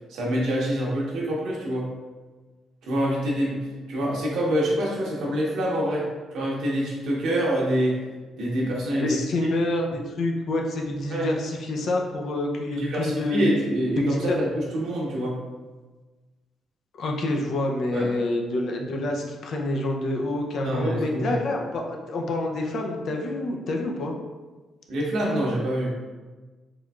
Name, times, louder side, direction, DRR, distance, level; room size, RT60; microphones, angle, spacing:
voice 1, 0.1-1.9 2.8-8.0 8.4-9.2 9.4-9.5 11.1-11.3 12.7-15.4 17.9-18.1 20.6-21.4 24.9-25.9, equal, 80° right, -4 dB, 1.0 m, -26 dB
voice 2, 8.9-13.5 14.0-14.4 17.0-24.1, left 2 dB, 65° left, 1 dB, 0.5 m, -27 dB
3.9 x 3.1 x 2.3 m, 1.3 s
cardioid pair, 90°, 0 cm